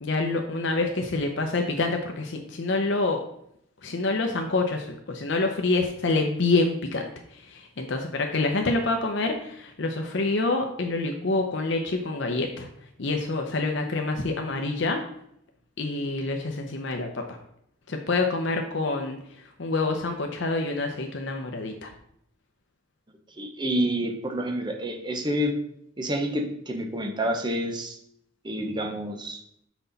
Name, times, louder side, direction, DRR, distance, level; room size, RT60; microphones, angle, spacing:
voice 1, 0.0-3.2 3.8-7.0 7.3-12.7 13.0-15.0 15.8-17.2 17.9-19.2 19.6-21.9, left 3 dB, 65° left, 3 dB, 0.7 m, -27 dB
voice 2, 23.4-25.5 26.0-28.0 28.4-29.4, equal, 25° right, 4 dB, 0.8 m, -28 dB
6.1 x 5.5 x 4.0 m, 0.72 s
head